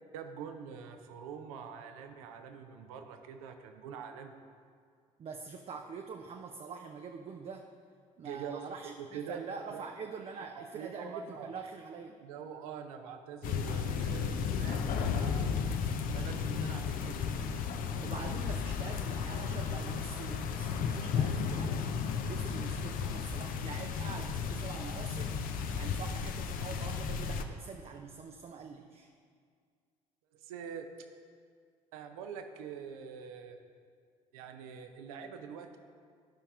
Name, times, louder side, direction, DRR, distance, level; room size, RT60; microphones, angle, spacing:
voice 1, 0.1-4.3 8.2-9.4 9.7-9.8 10.5-11.5 12.2-15.6 16.1-17.2 30.3-30.9 31.9-33.6 34.3-35.8, right 7 dB, 65° right, 7 dB, 0.7 m, -44 dB
voice 2, 5.2-7.7 8.2-12.2 18.0-22.0 22.3-25.5 25.8-29.1, right 5 dB, 30° right, 4 dB, 0.5 m, -45 dB
sound 1, 13.4-27.4, left 6 dB, 45° left, 0.6 m, -34 dB
12.5 x 5.5 x 3.5 m, 2.1 s
figure-of-eight pair, 55°, 20 cm